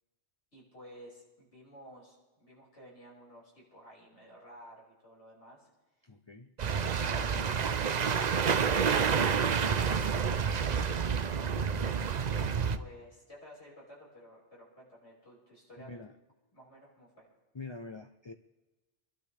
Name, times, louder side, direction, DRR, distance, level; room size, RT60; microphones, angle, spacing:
voice 1, 0.5-5.7 6.0-6.1 12.7-15.9 16.5-17.3, equal, 75° left, -5 dB, 6.2 m, -54 dB
voice 2, 6.0-6.5 11.4-11.7 15.8-16.1 17.5-18.3, left 3 dB, 30° left, 6 dB, 0.6 m, -46 dB
sound 1, 6.6-12.8, right 6 dB, 45° right, 0.6 m, -29 dB
26.5 x 12.0 x 3.4 m, 1.1 s
omnidirectional pair, 1.2 m